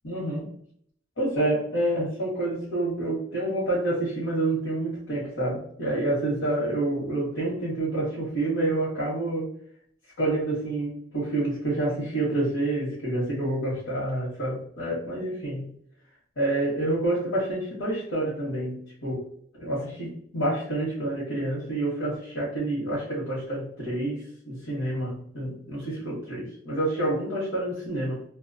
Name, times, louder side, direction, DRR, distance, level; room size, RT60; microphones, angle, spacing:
voice 1, 0.0-0.5 1.2-9.5 10.2-15.7 16.4-19.2 19.5-28.2, right 1 dB, 85° left, -8 dB, 1.0 m, -28 dB
2.3 x 2.2 x 2.5 m, 0.63 s
head